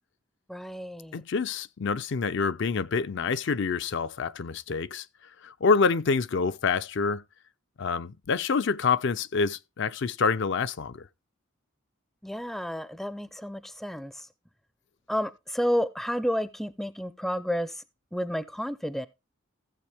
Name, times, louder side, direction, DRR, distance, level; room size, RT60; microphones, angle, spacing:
voice 1, 0.5-1.2 12.2-14.3 15.1-17.8 18.1-19.1, equal, ahead, 0.4 m, -31 dB
voice 2, 1.1-5.1 5.4-7.2 7.8-11.1, left 5 dB, 60° left, 0.5 m, -27 dB
15.0 x 7.6 x 3.4 m
head